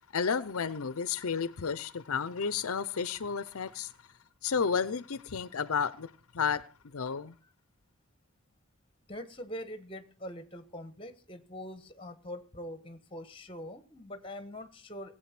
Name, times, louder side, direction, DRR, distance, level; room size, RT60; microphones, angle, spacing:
voice 1, 0.1-3.9 4.4-6.1 6.3-6.6 6.9-7.3, left 6 dB, 70° left, 0.6 m, -31 dB
voice 2, 9.1-15.1, left 1 dB, 25° left, 1.3 m, -43 dB
18.0 x 8.0 x 5.9 m
head